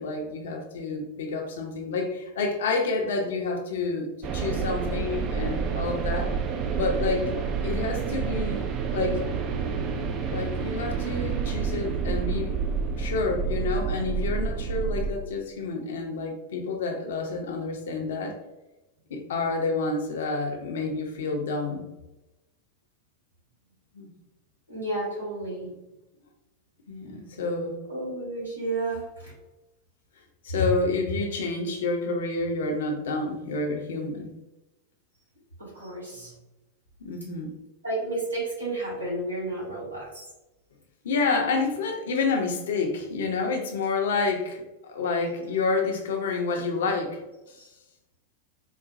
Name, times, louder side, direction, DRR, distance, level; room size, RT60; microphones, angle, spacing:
voice 1, 0.0-6.3 6.7-7.3 7.6-8.7 8.9-9.2 10.3-12.5 13.0-18.4 19.1-21.8 23.9-24.1 26.9-27.8 30.4-34.3 37.0-37.5 41.0-47.2 47.5-47.6, left 3 dB, 60° left, 3 dB, 0.6 m, -29 dB
sound 1, 4.2-15.1, right 6 dB, 35° right, 0.4 m, -29 dB
voice 2, 24.7-25.7 27.9-29.3 35.6-36.3 37.8-40.2 47.6-47.7, right 2 dB, 85° right, -7 dB, 1.3 m, -32 dB
3.9 x 2.2 x 2.5 m, 0.98 s
figure-of-eight pair, 90°, 0 cm